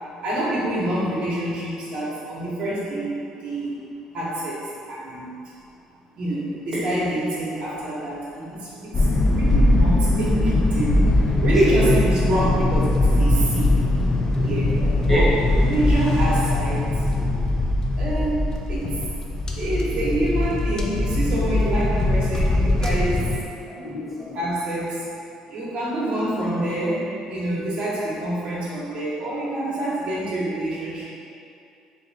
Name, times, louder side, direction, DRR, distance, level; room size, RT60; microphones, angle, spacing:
voice 1, 0.2-3.7 4.1-4.6 4.9-5.4 6.1-11.0 11.4-13.8 14.4-17.0 17.9-18.4 18.7-19.0 19.5-23.3 24.3-25.0 25.5-31.1, right 1 dB, 60° right, -7 dB, 0.9 m, -26 dB
sound 1, 8.9-23.4, left 1 dB, 30° left, 0.4 m, -21 dB
voice 2, 14.3-15.3 21.5-21.6 22.4-22.5 23.6-24.4, equal, ahead, -7 dB, 1.0 m, -29 dB
2.9 x 2.6 x 4.0 m, 2.6 s
supercardioid pair, 90°, 2 cm